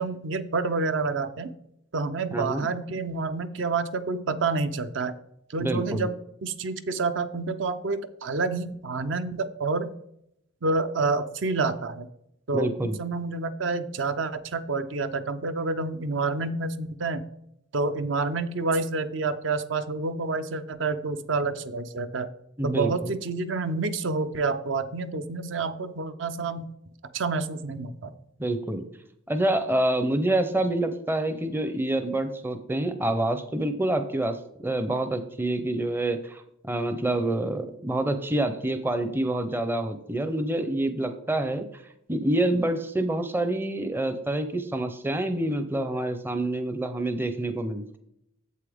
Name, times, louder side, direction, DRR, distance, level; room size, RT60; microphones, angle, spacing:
voice 1, 0.0-1.5 1.9-5.1 5.5-6.1 6.4-9.9 10.6-12.1 12.5-17.2 17.7-22.3 22.6-26.7 27.1-28.1, right 3 dB, 60° right, 11 dB, 0.6 m, -28 dB
voice 2, 2.3-2.7 5.6-6.1 12.5-13.0 22.6-23.1 28.4-28.9 29.3-34.4 34.6-41.8 42.1-48.0, right 1 dB, 10° right, 9 dB, 0.5 m, -27 dB
8.4 x 7.4 x 3.5 m, 0.77 s
head